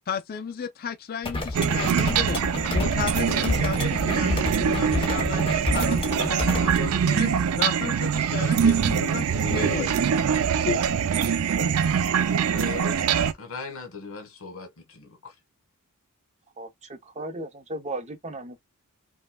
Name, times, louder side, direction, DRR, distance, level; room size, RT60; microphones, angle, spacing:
voice 1, 0.1-2.4 2.7-7.3 7.6-10.0 10.5-10.8 11.6-11.7, left 6 dB, 45° left, 0.4 m, -33 dB
sound 1, 1.2-6.8, left 2 dB, 25° left, 0.9 m, -29 dB
sound 2, 1.5-13.3, right 7 dB, 75° right, 0.4 m, -24 dB
voice 2, 9.3-10.2 12.1-12.3 12.5-15.3, left 4 dB, 65° left, 1.3 m, -38 dB
voice 3, 16.6-18.6, right 2 dB, 30° right, 0.7 m, -36 dB
5.3 x 2.2 x 2.2 m
head